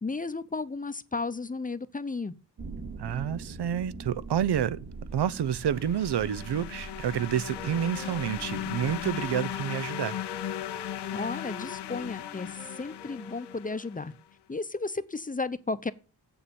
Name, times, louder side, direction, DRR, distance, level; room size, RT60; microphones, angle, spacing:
voice 1, 0.0-2.3 11.1-14.1 14.5-15.9, left 3 dB, 20° left, 0.7 m, -34 dB
sound 1, 2.6-9.6, right 4 dB, 60° right, 2.8 m, -43 dB
voice 2, 3.0-4.8 5.1-10.2, right 9 dB, 80° right, 0.7 m, -29 dB
sound 2, 5.5-14.1, left 11 dB, 80° left, 0.7 m, -37 dB
Wind instrument woodwind instrument, 7.5-14.2, left 1 dB, 5° left, 1.1 m, -47 dB
7.8 x 7.0 x 7.0 m
wide cardioid pair, 95°, 40 cm